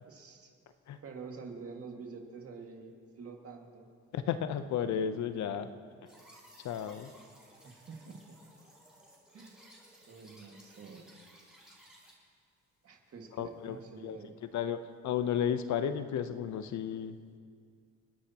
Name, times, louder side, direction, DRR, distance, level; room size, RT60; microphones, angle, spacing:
voice 1, 0.0-0.5 1.0-3.9 7.6-8.4 9.3-9.6 10.1-11.1 12.8-14.4, right 4 dB, 50° right, 2 dB, 2.0 m, -47 dB
voice 2, 4.1-5.7 6.6-7.1 13.4-13.8 14.0-17.2, left 8 dB, 70° left, 10 dB, 0.8 m, -33 dB
sound 1, 6.1-12.1, right 1 dB, ahead, 4.4 m, -58 dB
28.5 x 9.8 x 2.9 m, 2.1 s
cardioid pair, 90°, 30 cm